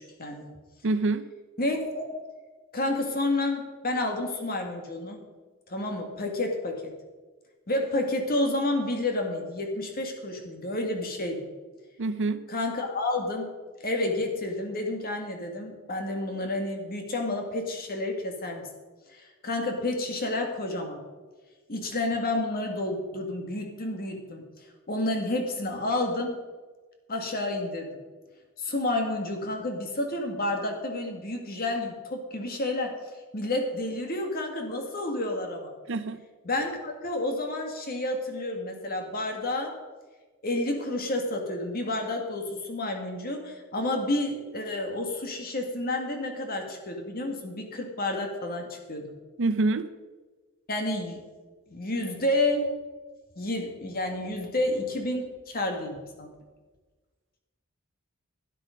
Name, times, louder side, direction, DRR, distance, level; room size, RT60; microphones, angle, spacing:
voice 1, 0.2-0.5 1.6-2.1 2.7-5.2 5.7-6.9 7.7-11.5 12.5-13.5 13.8-18.7 19.1-21.0 21.7-26.4 27.1-28.0 28.6-32.9 33.3-35.7 36.4-39.7 40.4-49.2 50.7-51.2 51.7-52.7 53.4-56.3, left 2 dB, 45° left, 3 dB, 2.0 m, -30 dB
voice 2, 0.8-1.3 12.0-12.4 35.9-36.2 49.4-49.9, right 3 dB, 60° right, 13 dB, 0.6 m, -26 dB
12.0 x 10.0 x 5.2 m, 1.3 s
head